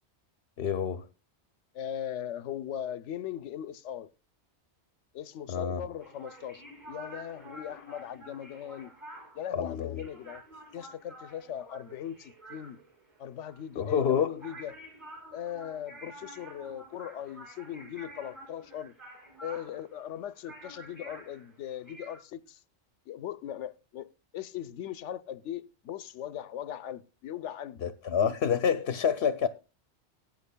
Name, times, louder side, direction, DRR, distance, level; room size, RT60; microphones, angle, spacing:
voice 1, 0.6-1.1 5.5-5.8 9.5-10.0 13.8-14.4 27.8-29.5, left 7 dB, 65° left, 0.9 m, -28 dB
voice 2, 1.7-4.1 5.1-8.9 9.3-10.4 10.7-12.8 13.2-14.8 15.3-18.9 19.4-22.6 23.1-27.8, left 10 dB, 90° left, 1.0 m, -39 dB
sound 1, 6.0-22.2, right 1 dB, 25° right, 5.8 m, -49 dB
19.0 x 9.2 x 2.2 m
omnidirectional pair, 1.2 m